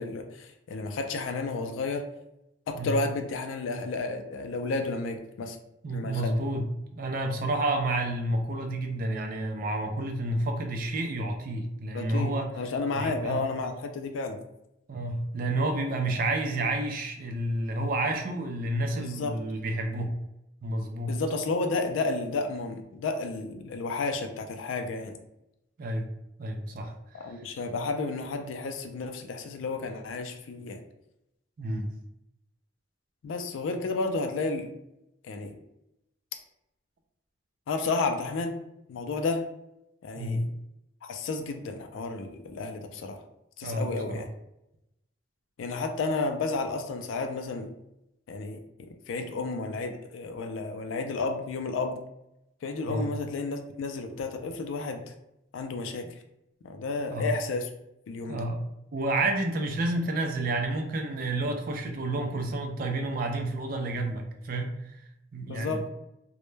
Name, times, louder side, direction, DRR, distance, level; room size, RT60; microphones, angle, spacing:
voice 1, 0.0-2.1 2.7-5.6 5.9-6.3 11.9-14.4 19.0-19.4 21.0-25.2 27.1-30.8 33.2-34.7 35.2-35.6 37.7-38.6 38.9-39.4 40.0-40.5 41.0-43.2 43.6-44.3 45.6-47.7 48.3-52.0 52.6-55.1 55.5-56.1 56.6-57.7 58.1-58.4 65.5-65.8, left 3 dB, 85° left, 6 dB, 0.3 m, -32 dB
voice 2, 5.8-12.5 12.9-13.5 14.9-20.2 20.6-21.1 25.8-26.1 26.4-27.3 31.6-31.9 40.2-40.4 43.6-44.2 52.9-53.1 57.1-57.3 58.3-58.6 58.9-64.8 65.3-65.9, right 2 dB, 45° right, 4 dB, 0.3 m, -30 dB
2.1 x 2.1 x 3.1 m, 0.86 s
head